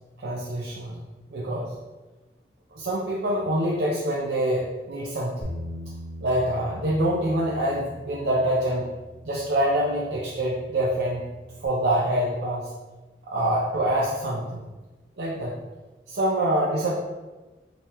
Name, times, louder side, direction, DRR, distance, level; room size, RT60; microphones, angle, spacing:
voice 1, 0.2-1.0 1.3-1.7 2.7-5.3 6.2-8.9 9.2-11.2 11.6-12.7 13.3-14.6 15.2-15.6 16.1-16.9, right 1 dB, 70° right, -4 dB, 0.6 m, -25 dB
Bass guitar, 5.4-11.7, left 1 dB, 60° left, 1.1 m, -41 dB
5.3 x 2.9 x 3.0 m, 1.2 s
head